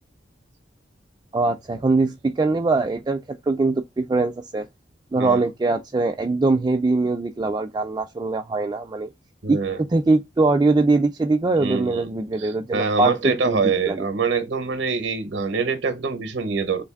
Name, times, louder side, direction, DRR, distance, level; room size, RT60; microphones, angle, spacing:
voice 1, 1.3-4.7 5.1-9.1 9.5-13.6 13.9-14.1, right 3 dB, 20° right, 0.3 m, -22 dB
voice 2, 9.4-9.8 11.6-12.1 12.4-16.8, right 4 dB, 70° right, 0.7 m, -25 dB
3.4 x 2.5 x 3.5 m
head